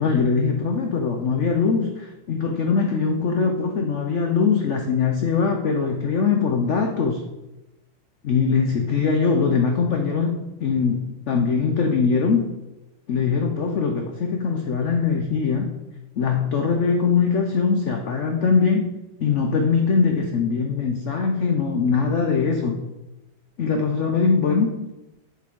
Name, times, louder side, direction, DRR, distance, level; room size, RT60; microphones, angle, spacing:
voice 1, 0.0-7.2 8.2-12.5 13.1-15.7 16.2-18.9 19.2-22.8 23.6-24.8, left 5 dB, 85° left, 3 dB, 0.6 m, -22 dB
7.1 x 6.7 x 3.7 m, 0.99 s
omnidirectional pair, 2.2 m